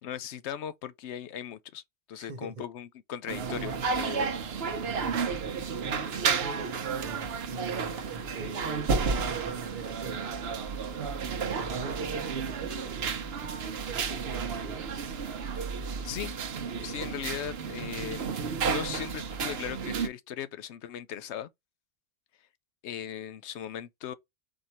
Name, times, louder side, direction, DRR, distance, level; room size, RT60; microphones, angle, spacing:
voice 1, 0.0-1.8 2.1-4.3 16.0-16.3 16.8-18.3 18.6-21.5 22.8-24.1, left 9 dB, 85° left, 0.9 m, -38 dB
voice 2, 2.1-2.7 4.1-4.4 4.8-5.7 7.0-8.9 9.3-10.5 11.4-14.9, right 4 dB, 45° right, 0.9 m, -44 dB
sound 1, 3.3-20.1, right 5 dB, 70° right, 1.0 m, -32 dB
4.5 x 2.6 x 4.1 m
omnidirectional pair, 1.1 m